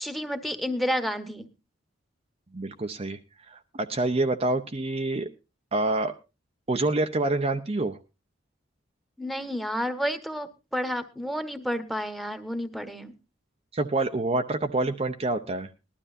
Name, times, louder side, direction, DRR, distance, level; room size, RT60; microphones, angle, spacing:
voice 1, 0.0-1.5 9.2-13.1, equal, ahead, 11 dB, 1.2 m, -30 dB
voice 2, 2.5-3.2 3.5-5.3 5.7-6.1 6.7-8.0 13.7-15.7, right 2 dB, 30° right, 5 dB, 0.7 m, -27 dB
19.5 x 12.5 x 2.6 m, 0.28 s
head